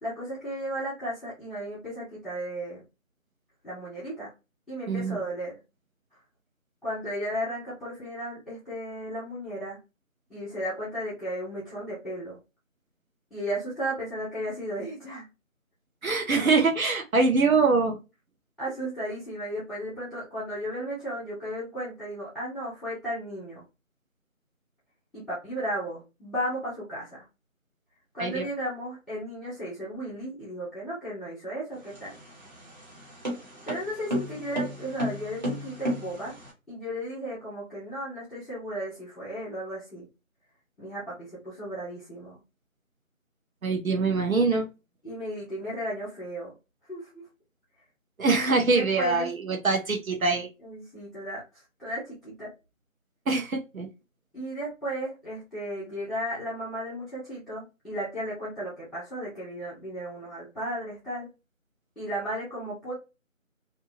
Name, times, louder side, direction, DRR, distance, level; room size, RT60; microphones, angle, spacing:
voice 1, 0.0-2.8 3.6-4.3 4.7-5.5 6.8-9.8 10.3-12.4 13.3-15.3 18.6-23.6 25.1-27.3 28.1-32.2 33.7-36.3 36.7-40.1 40.8-42.4 45.0-46.5 46.9-47.2 48.6-49.3 50.6-52.5 54.3-61.3 62.0-62.9, equal, ahead, -10 dB, 0.7 m, -34 dB
voice 2, 4.9-5.2 16.0-18.0 28.2-28.4 43.6-44.7 48.2-50.5 53.3-53.9, right 3 dB, 80° right, 3 dB, 0.9 m, -24 dB
sound 1, 31.8-36.5, equal, 35° right, 1.0 m, -33 dB
2.7 x 2.2 x 2.7 m, 0.26 s
figure-of-eight pair, 165°, 41 cm